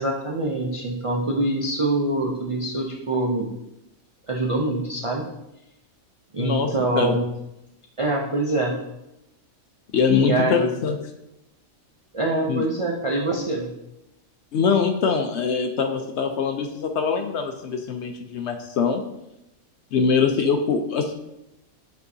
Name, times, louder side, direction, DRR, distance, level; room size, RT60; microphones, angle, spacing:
voice 1, 0.0-3.5 4.3-5.2 6.3-7.3 8.0-8.8 10.1-10.7 12.1-13.7, right 2 dB, 50° right, -2 dB, 0.4 m, -24 dB
voice 2, 6.4-6.7 6.9-7.2 9.9-11.0 12.5-12.6 14.5-19.0 19.9-21.1, left 6 dB, 65° left, 5 dB, 0.7 m, -23 dB
8.2 x 4.5 x 2.7 m, 0.87 s
omnidirectional pair, 1.5 m